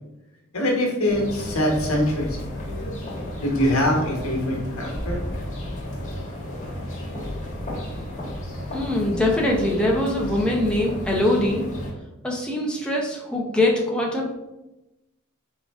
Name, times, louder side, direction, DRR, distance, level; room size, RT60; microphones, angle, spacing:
voice 1, 0.5-2.4 3.4-5.2, left 1 dB, 80° left, -1 dB, 1.3 m, -23 dB
sound 1, 1.1-11.9, left 1 dB, 35° left, 1.2 m, -33 dB
voice 2, 8.7-11.6 12.2-14.3, left 1 dB, 5° left, -3 dB, 0.7 m, -23 dB
3.9 x 3.6 x 3.5 m, 0.96 s
head